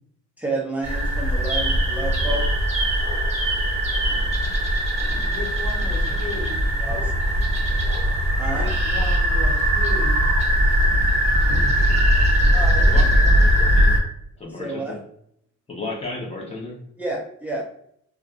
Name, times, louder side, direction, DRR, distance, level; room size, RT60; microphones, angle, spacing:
voice 1, 0.4-2.5 6.8-7.1 8.4-8.7 12.5-13.4 14.6-15.0 17.0-17.6, right 2 dB, 5° right, -2 dB, 0.6 m, -30 dB
sound 1, 0.8-14.0, equal, 20° right, 0.9 m, -20 dB
voice 2, 5.3-6.6 8.5-10.3, left 3 dB, 65° left, -1 dB, 1.0 m, -35 dB
voice 3, 12.8-14.0 14.4-15.0 15.7-16.8, left 2 dB, 20° left, -2 dB, 0.9 m, -33 dB
2.5 x 2.4 x 2.5 m, 0.69 s
cardioid pair, 90°, 30 cm